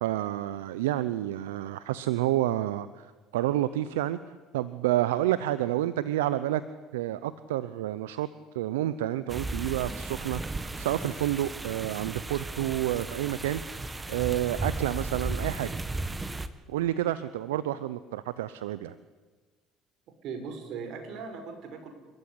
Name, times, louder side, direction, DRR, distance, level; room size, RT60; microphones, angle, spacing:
voice 1, 0.0-4.2 4.5-6.6 6.9-8.3 8.5-13.6 14.1-15.7 16.7-18.9, right 14 dB, 85° right, 15 dB, 0.7 m, -29 dB
sound 1, 9.3-16.5, right 2 dB, 20° right, 2.0 m, -35 dB
voice 2, 20.2-21.9, right 5 dB, 65° right, 7 dB, 5.4 m, -38 dB
28.0 x 14.5 x 9.9 m, 1.4 s
hypercardioid pair, 70°, 0 cm